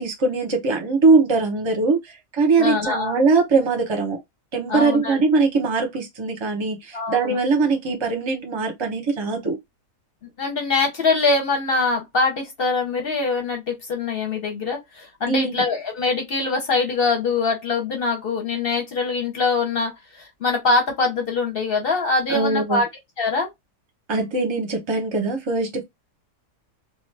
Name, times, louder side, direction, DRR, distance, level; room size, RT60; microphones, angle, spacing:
voice 1, 0.0-2.0 2.3-4.2 4.5-9.6 15.3-15.6 22.3-22.8 24.1-25.8, right 3 dB, 25° right, 0.6 m, -21 dB
voice 2, 2.6-3.1 4.7-5.2 6.9-7.4 10.4-22.9 23.2-23.5, left 3 dB, 45° left, 0.9 m, -23 dB
2.5 x 2.4 x 3.2 m
omnidirectional pair, 1.6 m